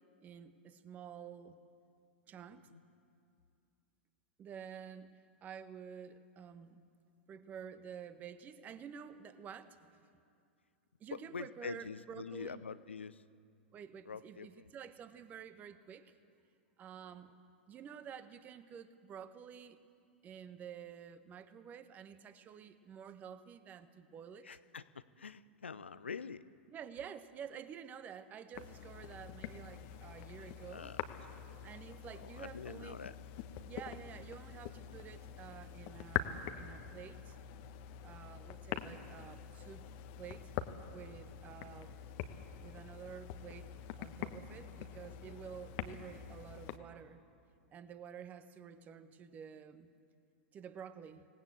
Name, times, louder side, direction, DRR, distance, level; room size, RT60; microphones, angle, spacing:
voice 1, 0.2-1.6 2.3-2.7 4.4-5.1 5.4-6.8 7.3-10.1 11.0-12.6 13.7-16.2 16.8-17.4 17.7-19.8 20.2-24.5 26.7-30.9 31.6-33.0 33.7-37.4 38.0-39.8 40.2-40.5 40.9-41.9 42.6-47.2 47.7-49.9 50.5-51.3, right 7 dB, 25° right, 11 dB, 1.4 m, -50 dB
voice 2, 11.3-13.2 14.1-14.6 24.4-26.4 30.3-31.0 32.2-33.1, left 5 dB, 75° left, 16 dB, 0.8 m, -45 dB
sound 1, 28.5-46.8, left 9 dB, 45° left, 1.3 m, -45 dB
26.5 x 18.5 x 7.9 m, 2.4 s
figure-of-eight pair, 100°, 6 cm